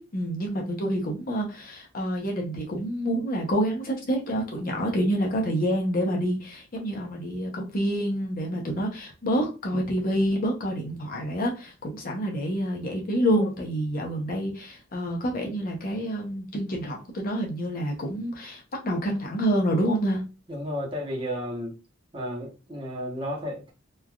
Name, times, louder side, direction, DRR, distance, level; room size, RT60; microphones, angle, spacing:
voice 1, 0.0-20.2, equal, 45° left, 0.7 m, -28 dB
voice 2, 20.5-21.7 22.1-23.7, equal, 25° right, 0.8 m, -32 dB
3.2 x 2.4 x 2.2 m
head